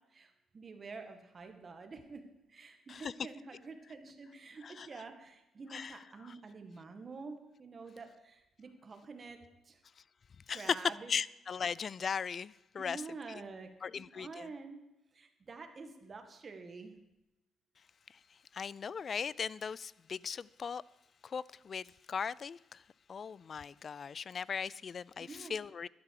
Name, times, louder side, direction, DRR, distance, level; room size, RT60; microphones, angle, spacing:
voice 1, 0.1-2.2 2.5-9.4 9.6-9.8 10.5-11.1 12.8-14.8 15.1-17.0 25.2-25.6, right 4 dB, 40° right, 1.9 m, -48 dB
voice 2, 11.1-13.0 13.3-13.4 13.8-14.5 18.1-18.2 18.5-20.8 21.2-22.8 23.1-25.9, left 6 dB, 45° left, 0.3 m, -38 dB
12.5 x 11.5 x 4.8 m
cardioid pair, 90°, 0 cm